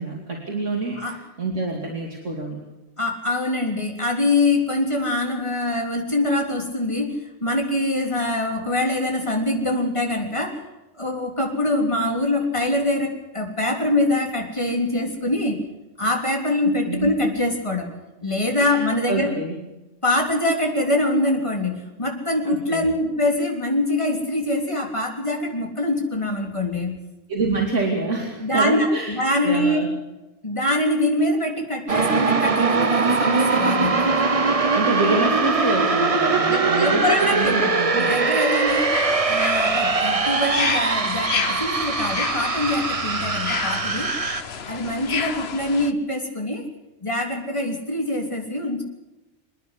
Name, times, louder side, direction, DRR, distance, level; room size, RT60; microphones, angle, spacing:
voice 1, 0.0-2.6 16.6-17.2 18.6-19.6 22.4-22.9 27.3-29.9 34.7-38.2, right 3 dB, 85° right, 0 dB, 3.0 m, -27 dB
voice 2, 3.0-10.6 11.0-15.6 16.0-17.9 18.2-19.3 20.0-27.0 28.4-29.8 30.4-34.2 36.5-37.7 37.9-38.9 39.3-44.1 44.7-46.7 47.0-48.8, left 1 dB, 25° left, 1 dB, 3.6 m, -24 dB
sound 1, 31.9-44.4, right 4 dB, 30° right, 1.0 m, -21 dB
sound 2, 38.7-45.9, left 6 dB, 60° left, 1.3 m, -30 dB
27.0 x 10.5 x 9.7 m, 1.1 s
omnidirectional pair, 1.2 m